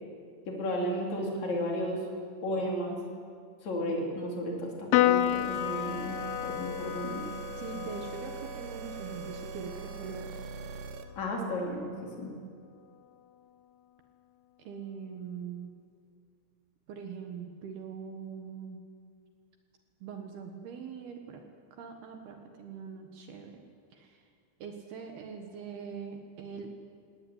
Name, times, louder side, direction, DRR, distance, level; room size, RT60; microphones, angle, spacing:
voice 1, 0.5-2.0 2.4-3.0 3.6-7.2 11.2-11.9 12.2-12.3, equal, 40° left, 0 dB, 4.2 m, -33 dB
Piano, 4.9-11.6, left 13 dB, 85° left, 3.1 m, -32 dB
sound 1, 5.1-11.0, right 6 dB, 80° right, 3.6 m, -42 dB
voice 2, 7.5-10.4 14.6-15.7 16.9-18.8 20.0-21.4 21.7-23.6 23.9-24.3 24.6-26.8, right 6 dB, 65° right, 4 dB, 3.0 m, -42 dB
18.5 x 17.5 x 9.4 m, 2.3 s
omnidirectional pair, 5.4 m